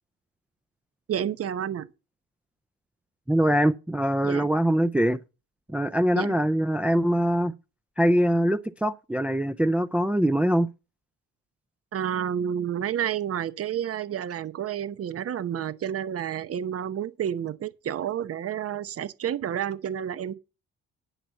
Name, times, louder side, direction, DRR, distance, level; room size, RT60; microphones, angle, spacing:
voice 1, 1.1-1.9 4.2-4.5 6.2-6.4 11.9-20.3, right 9 dB, 50° right, 0.9 m, -30 dB
voice 2, 3.3-5.2 5.7-7.5 8.0-10.7, right 1 dB, 5° right, 0.5 m, -23 dB
10.0 x 5.7 x 7.1 m
cardioid pair, 90°, 30 cm